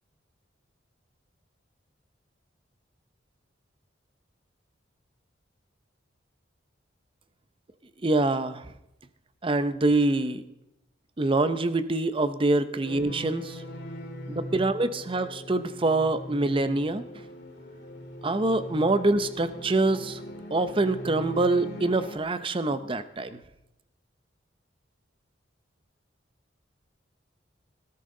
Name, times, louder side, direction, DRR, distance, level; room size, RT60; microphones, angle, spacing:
voice 1, 8.0-8.7 9.4-10.4 11.2-13.6 14.3-17.0 18.2-20.2 20.5-23.4, right 2 dB, 30° right, 12 dB, 0.7 m, -25 dB
sound 1, 12.8-22.2, equal, 65° left, 2.1 m, -40 dB
19.0 x 12.5 x 3.8 m, 0.86 s
head